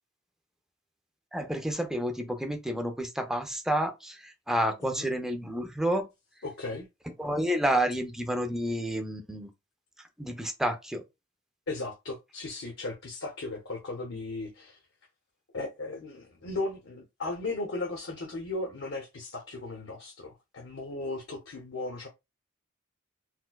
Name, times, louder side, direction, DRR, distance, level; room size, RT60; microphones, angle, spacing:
voice 1, 1.3-6.1 7.2-9.5 10.2-11.0, equal, ahead, 0.5 m, -30 dB
voice 2, 6.4-6.9 11.7-14.8 15.5-22.1, left 2 dB, 70° left, 0.8 m, -36 dB
4.3 x 2.1 x 2.3 m
head